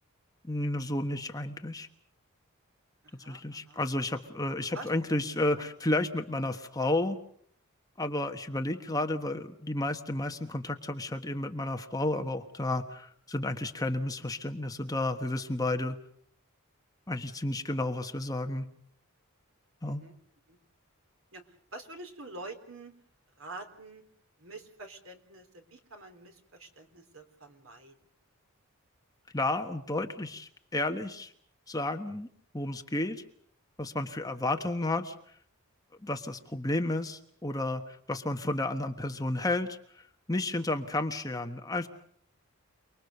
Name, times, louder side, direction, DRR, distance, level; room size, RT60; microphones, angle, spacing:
voice 1, 0.4-1.9 3.2-7.2 8.0-16.0 17.1-18.7 19.8-20.0 29.3-31.3 31.7-32.3 32.5-33.2 33.8-35.1 36.0-40.0 40.3-41.9, left 2 dB, 15° left, 5 dB, 1.3 m, -32 dB
voice 2, 3.0-3.8 4.7-4.9 5.5-5.7 19.8-20.2 20.5-20.6 21.3-21.4 21.7-22.9 23.4-24.0 24.4-27.9, right 2 dB, 65° right, 6 dB, 3.7 m, -46 dB
29.0 x 21.0 x 6.8 m, 0.64 s
head